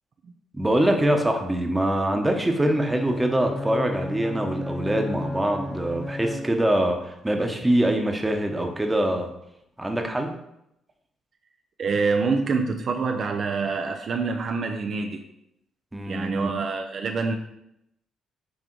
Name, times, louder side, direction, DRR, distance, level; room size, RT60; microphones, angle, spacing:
voice 1, 0.5-9.3 9.8-10.3 15.9-16.5, right 1 dB, 10° right, 3 dB, 1.0 m, -24 dB
Bowed string instrument, 2.7-6.9, left 2 dB, 25° left, 0.7 m, -33 dB
voice 2, 11.8-15.2 16.1-17.4, right 4 dB, 55° right, 4 dB, 0.5 m, -26 dB
6.3 x 3.4 x 4.6 m, 0.80 s
cardioid pair, 90°, 0 cm